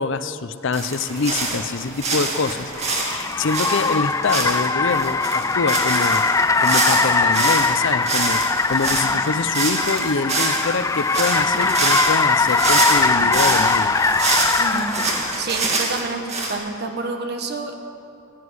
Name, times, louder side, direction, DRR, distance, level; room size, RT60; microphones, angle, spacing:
voice 1, 0.0-14.0, left 4 dB, 60° left, 12 dB, 0.6 m, -25 dB
sound 1, 0.7-7.7 8.0-16.5, right 3 dB, 30° right, 2.2 m, -25 dB
Car, 1.5-15.5, left 4 dB, 15° left, 0.3 m, -21 dB
voice 2, 8.9-9.2 13.2-13.5 14.6-14.9 15.4-17.8, right 3 dB, 50° right, 4 dB, 1.6 m, -29 dB
15.5 x 8.3 x 9.8 m, 2.6 s
head